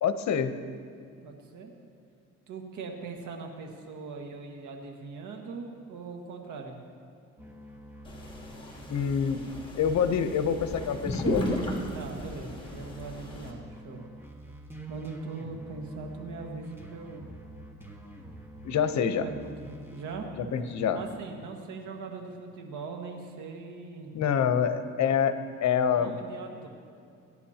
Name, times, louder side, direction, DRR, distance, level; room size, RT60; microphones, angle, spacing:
voice 1, 0.0-0.5 8.9-9.4 9.8-11.4 18.6-19.3 20.5-21.0 24.1-26.2, left 7 dB, 65° left, 9 dB, 0.9 m, -26 dB
voice 2, 1.2-1.7 2.5-6.8 11.9-14.0 14.9-17.3 19.2-20.6 20.9-24.1 25.9-26.7, right 4 dB, 75° right, 2 dB, 1.8 m, -40 dB
sound 1, 7.4-12.3 12.6-20.1, right 1 dB, 10° right, 1.6 m, -47 dB
sound 2, 8.1-13.5, equal, 15° left, 3.0 m, -35 dB
22.5 x 10.5 x 2.9 m, 2.5 s
cardioid pair, 90°, 30 cm